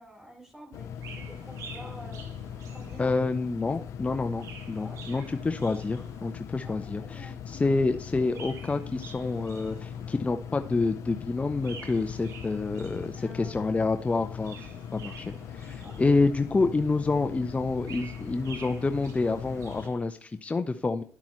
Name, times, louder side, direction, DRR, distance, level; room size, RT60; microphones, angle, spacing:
voice 1, 0.0-2.3 2.7-3.2 3.6-3.7 4.1-4.2 4.8-5.3 6.6-7.7 13.1-13.7 15.8-16.3, equal, 10° right, -1 dB, 4.2 m, -48 dB
sound 1, 0.7-19.9, left 8 dB, 80° left, 0.5 m, -40 dB
Chirp tweet, 0.9-3.4 4.1-6.5 8.1-10.3 11.5-13.4 14.2-16.5 17.6-20.1, right 5 dB, 75° right, 1.7 m, -48 dB
voice 2, 3.0-21.0, left 3 dB, 25° left, 7 dB, 0.7 m, -28 dB
11.0 x 8.4 x 3.1 m, 0.43 s
cardioid pair, 70°, 5 cm